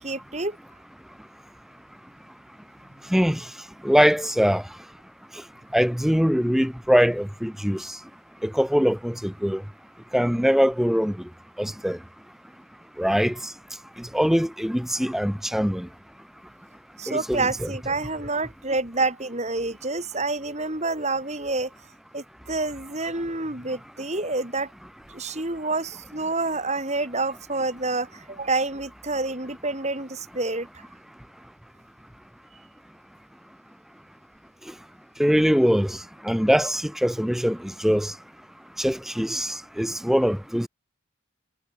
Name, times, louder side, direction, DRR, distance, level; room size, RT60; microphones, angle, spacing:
voice 1, 0.0-0.6 17.0-21.7 22.1-24.7 25.1-30.8, right 3 dB, 30° right, 3.5 m, -28 dB
voice 2, 3.8-4.6 5.7-7.8 8.4-9.6 10.1-11.1 11.6-12.0 13.0-13.3 14.1-15.9 17.1-17.4 35.2-36.0 36.2-37.6 37.8-38.1 38.8-40.7, equal, ahead, 0.7 m, -22 dB
head